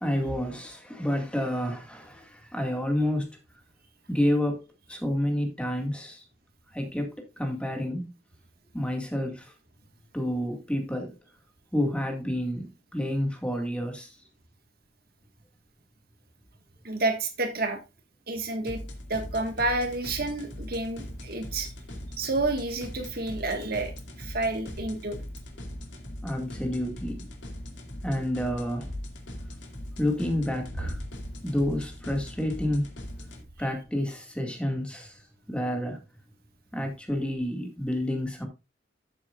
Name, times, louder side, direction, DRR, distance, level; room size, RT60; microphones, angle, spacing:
voice 1, 0.0-3.3 4.1-4.6 4.9-6.2 6.7-8.1 8.7-9.5 10.1-11.1 11.7-14.2 26.2-27.3 28.0-28.9 30.0-31.0 31.4-32.9 33.6-35.2 35.5-36.0 36.7-38.5, left 1 dB, 5° left, 2.0 m, -29 dB
voice 2, 16.8-17.8 18.3-18.8 19.1-21.7 22.2-23.9 24.2-25.2, right 2 dB, 55° right, 1.6 m, -29 dB
sound 1, 18.7-33.4, left 1 dB, 70° left, 2.1 m, -40 dB
sound 2, 24.2-24.3 24.6-27.5 28.3-30.0 30.5-31.6 33.0-34.1, equal, 75° right, 5.8 m, -44 dB
12.5 x 7.5 x 2.4 m
head